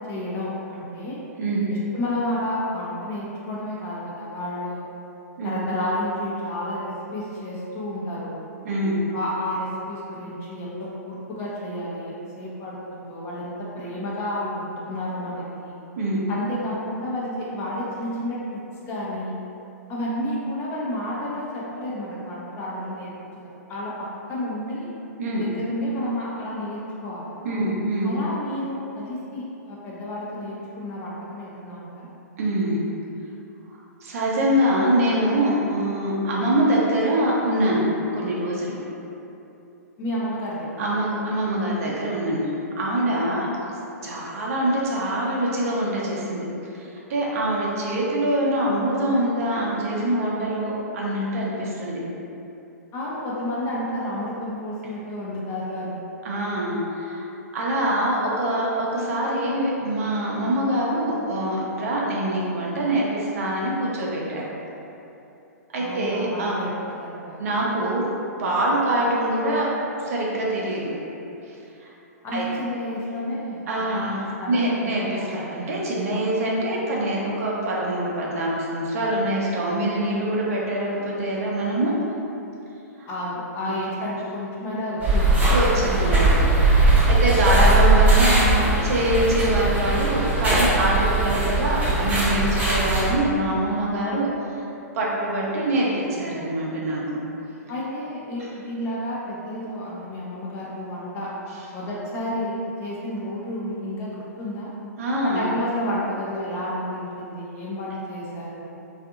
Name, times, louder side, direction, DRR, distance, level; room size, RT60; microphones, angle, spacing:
voice 1, 0.1-1.2 1.9-4.9 5.4-8.4 9.1-15.7 16.3-18.6 18.9-19.4 19.9-23.1 23.7-23.9 24.3-24.9 25.4-27.6 28.0-32.1 40.0-40.7 52.9-56.0 65.8-66.7 67.0-67.4 72.2-74.1 74.4-75.3 83.1-85.5 97.7-101.3 101.7-104.7 105.2-108.7, left 1 dB, 30° left, -6 dB, 0.6 m, -31 dB
voice 2, 8.6-9.0 16.0-16.2 25.2-25.4 27.4-28.1 32.4-32.8 34.0-37.8 38.1-38.8 40.8-42.5 42.8-43.5 44.0-46.5 46.7-52.0 56.2-57.3 57.5-64.5 65.7-66.6 67.4-68.1 68.4-70.9 71.5-71.6 71.8-71.9 72.3-72.5 73.7-82.0 83.0-83.1 83.6-83.7 85.5-94.3 94.9-97.2 105.0-105.4, right 1 dB, 55° right, -4 dB, 0.6 m, -24 dB
sound 1, 85.0-93.1, right 2 dB, 15° right, 0.9 m, -19 dB
2.6 x 2.4 x 2.4 m, 2.9 s
hypercardioid pair, 115°, 9 cm